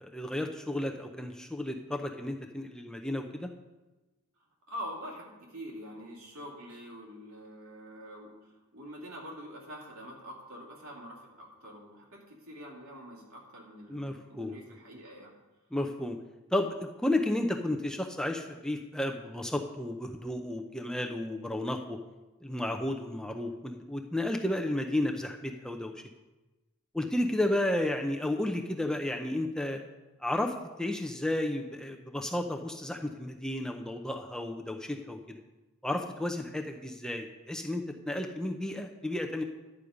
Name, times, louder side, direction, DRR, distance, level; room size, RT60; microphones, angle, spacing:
voice 1, 0.0-3.5 13.9-14.5 15.7-16.2 16.5-22.0 22.4-25.9 26.9-29.8 30.2-35.2 35.8-39.4, left 1 dB, 5° left, 3 dB, 0.5 m, -32 dB
voice 2, 4.7-15.3, equal, 75° right, -2 dB, 2.8 m, -45 dB
11.0 x 8.2 x 5.1 m, 1.1 s
head